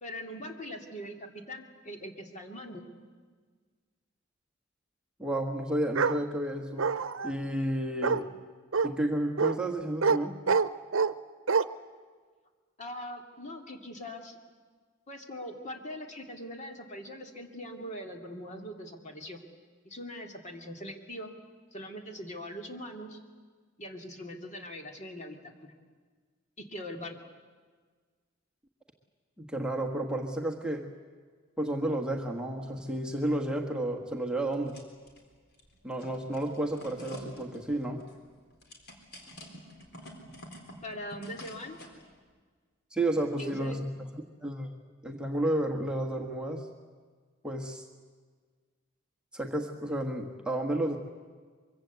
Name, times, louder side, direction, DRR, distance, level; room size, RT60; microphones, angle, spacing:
voice 1, 0.0-2.8 12.8-14.4 15.1-19.4 19.8-21.3 21.7-23.2 23.8-25.7 26.6-27.2 40.8-41.8 43.4-43.8, equal, 35° left, 4 dB, 2.5 m, -41 dB
voice 2, 5.2-6.9 7.2-8.3 8.8-10.4 29.4-30.9 31.6-34.8 35.8-38.0 42.9-44.1 44.4-44.7 45.0-46.7 47.4-47.8 49.3-51.0, right 1 dB, 5° right, 1 dB, 1.4 m, -31 dB
Bark, 5.9-6.2 6.8-7.3 8.0-8.2 8.7-8.9 9.4-9.6 10.0-10.2 10.5-11.1 11.5-11.6, right 5 dB, 90° right, 0.8 m, -25 dB
sound 1, 34.5-35.2 35.5-42.0, equal, 55° left, 4.1 m, -48 dB
24.0 x 23.5 x 8.2 m, 1.5 s
head